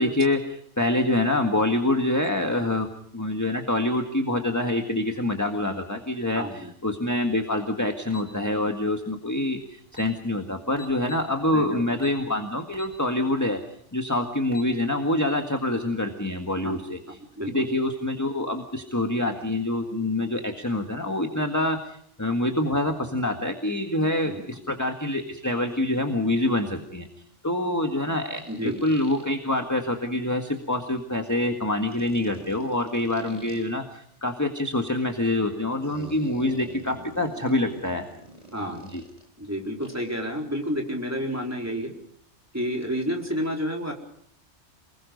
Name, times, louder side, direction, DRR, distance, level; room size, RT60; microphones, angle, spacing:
voice 1, 0.0-2.9 3.1-13.6 13.9-17.0 17.5-27.1 27.4-38.1 38.9-39.0, left 1 dB, 15° left, 4 dB, 1.8 m, -26 dB
voice 2, 6.3-6.7 11.5-11.8 16.6-16.9 17.4-17.6 24.2-24.6 28.5-28.8 38.5-38.8 39.4-41.9 42.5-43.9, equal, 15° right, 0 dB, 4.3 m, -30 dB
sound 1, 8.1-8.3 9.5-9.6 9.9-10.1 10.8-11.3 12.0-12.2 12.7-13.0 13.4-13.5 14.3-14.7, left 2 dB, 50° right, 5.0 m, -44 dB
sound 2, 25.7-25.8 28.3-29.3 31.9-33.6 35.8-39.3 39.8-40.2, right 1 dB, 35° right, 5.5 m, -45 dB
28.5 x 21.0 x 5.3 m, 0.67 s
omnidirectional pair, 1.2 m